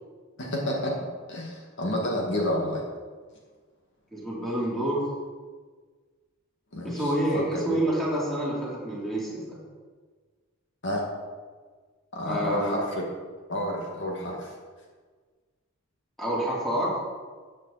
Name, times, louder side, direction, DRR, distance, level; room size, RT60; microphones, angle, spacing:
voice 1, 0.4-0.9 1.3-2.8 6.7-7.8 10.8-11.0 12.1-13.1 13.5-14.5, left 1 dB, 55° left, -1 dB, 2.0 m, -30 dB
voice 2, 4.1-5.0 6.8-9.6 12.2-12.8 16.2-16.9, right 1 dB, ahead, -7 dB, 3.4 m, -28 dB
14.0 x 8.8 x 4.2 m, 1.5 s
head